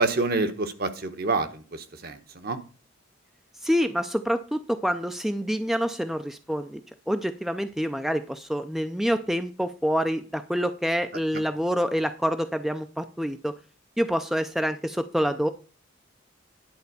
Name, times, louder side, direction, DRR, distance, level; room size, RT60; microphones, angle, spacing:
voice 1, 0.0-2.6, right 3 dB, 50° right, 9 dB, 1.1 m, -27 dB
voice 2, 3.6-6.8 7.1-13.5 14.0-15.5, equal, ahead, 8 dB, 0.4 m, -27 dB
10.5 x 4.5 x 6.8 m, 0.37 s
head